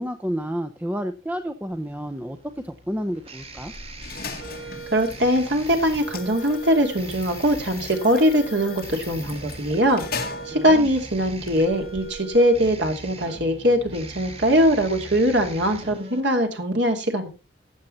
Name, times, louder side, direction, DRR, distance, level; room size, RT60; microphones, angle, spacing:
voice 1, 0.0-2.4 2.6-3.7 10.6-10.9, equal, 10° right, 6 dB, 0.7 m, -30 dB
sound 1, 1.7-16.2, right 4 dB, 30° right, 1.7 m, -40 dB
sound 2, 3.4-12.7, left 4 dB, 55° left, 2.0 m, -39 dB
voice 2, 4.9-10.0 10.5-17.3, equal, 70° right, 4 dB, 2.8 m, -21 dB
14.5 x 8.6 x 4.1 m, 0.29 s
head